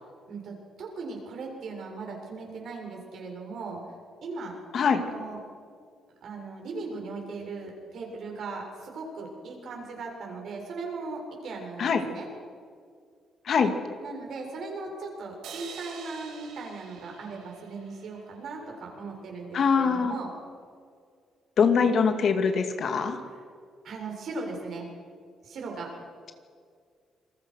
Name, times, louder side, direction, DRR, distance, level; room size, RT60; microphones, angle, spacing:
voice 1, 0.8-3.9 4.2-4.5 4.9-5.4 6.2-12.3 14.0-20.3 23.2-23.4 23.8-24.9 25.4-25.9, right 3 dB, 65° right, 1 dB, 7.0 m, -38 dB
sound 1, 15.4-18.7, right 6 dB, 90° right, 4.0 m, -46 dB
voice 2, 19.5-20.1 21.6-23.2, left 6 dB, 60° left, 7 dB, 2.4 m, -23 dB
27.5 x 21.5 x 6.4 m, 2.1 s
cardioid pair, 90°, 0 cm